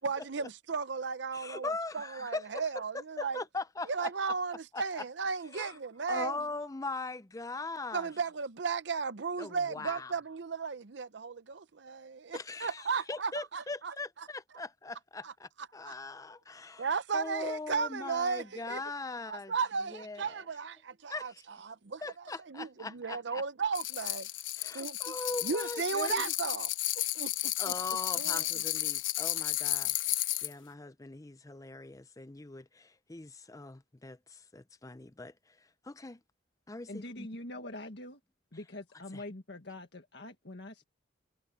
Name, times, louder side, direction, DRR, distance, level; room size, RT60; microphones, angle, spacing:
voice 1, 0.0-3.4 3.9-6.5 7.9-13.9 15.2-15.3 15.6-15.9 16.8-18.8 19.3-24.3 24.7-25.1 25.4-26.7 27.0-27.7 28.2-28.6, right 5 dB, 65° right, 0.7 m, -35 dB
voice 2, 1.3-2.4 2.9-4.1 4.7-5.0 5.5-5.8 6.1-8.1 9.4-10.1 12.3-16.9 17.1-19.5 19.9-20.2 21.1-21.4 22.0-23.4 24.6-26.2 27.6-30.0 30.4-35.3 35.8-36.2 36.7-37.3 39.1-39.2, left 3 dB, 15° left, 0.6 m, -40 dB
sound 1, 23.7-30.5, left 15 dB, 80° left, 1.1 m, -33 dB
voice 3, 36.9-38.2 38.5-40.8, left 1 dB, 60° left, 1.8 m, -44 dB
head